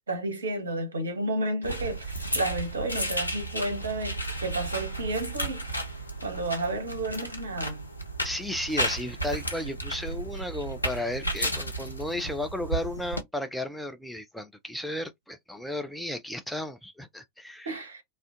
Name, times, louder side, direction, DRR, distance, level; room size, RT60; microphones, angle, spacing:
voice 1, 0.0-5.6 6.2-7.8 17.6-18.0, right 2 dB, 70° right, 0.8 m, -31 dB
sound 1, 1.6-13.2, right 1 dB, 85° left, 0.6 m, -33 dB
voice 2, 8.2-17.8, left 1 dB, ahead, 0.4 m, -34 dB
2.4 x 2.1 x 2.6 m
figure-of-eight pair, 90°, 0 cm